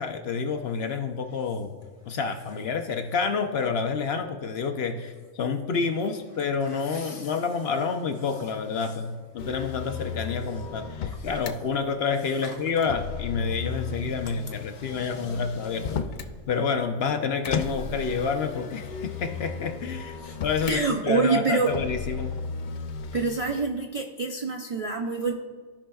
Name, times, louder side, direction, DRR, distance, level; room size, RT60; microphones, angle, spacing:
voice 1, 0.0-1.8 2.1-16.0 16.5-22.4, left 5 dB, 60° left, 6 dB, 0.8 m, -29 dB
voice 2, 6.8-7.3 11.1-11.3 12.4-12.5 14.8-15.1 20.2-21.7 23.1-25.3, right 4 dB, 55° right, 1 dB, 0.4 m, -27 dB
Motor vehicle (road), 9.4-11.5 12.8-16.4 17.4-20.8 21.7-23.6, left 5 dB, 80° left, 0.4 m, -35 dB
16.0 x 5.4 x 2.3 m, 1.5 s
omnidirectional pair, 1.4 m